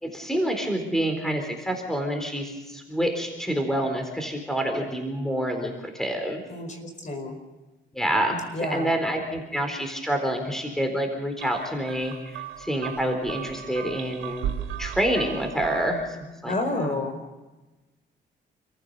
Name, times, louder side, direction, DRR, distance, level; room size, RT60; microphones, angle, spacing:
voice 1, 0.0-6.4 7.9-14.5 14.8-16.9, right 1 dB, ahead, 4 dB, 4.1 m, -27 dB
voice 2, 6.5-7.4 8.5-8.9 16.4-17.2, left 2 dB, 40° left, 6 dB, 4.9 m, -30 dB
sound 1, 11.4-16.1, right 10 dB, 90° right, 1.4 m, -36 dB
28.0 x 15.0 x 6.7 m, 1.1 s
cardioid pair, 90°, 20 cm